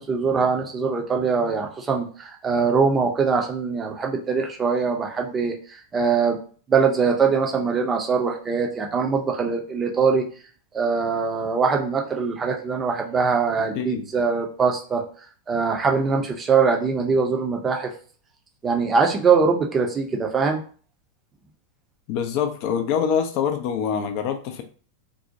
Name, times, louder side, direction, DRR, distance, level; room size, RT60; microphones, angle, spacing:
voice 1, 0.0-6.4 6.7-10.3 10.7-15.0 15.5-17.9 18.6-20.6, right 5 dB, 20° right, 2 dB, 0.5 m, -22 dB
voice 2, 22.1-24.6, left 7 dB, 45° left, 6 dB, 0.3 m, -25 dB
2.6 x 2.0 x 2.6 m, 0.41 s
figure-of-eight pair, 90°, 0 cm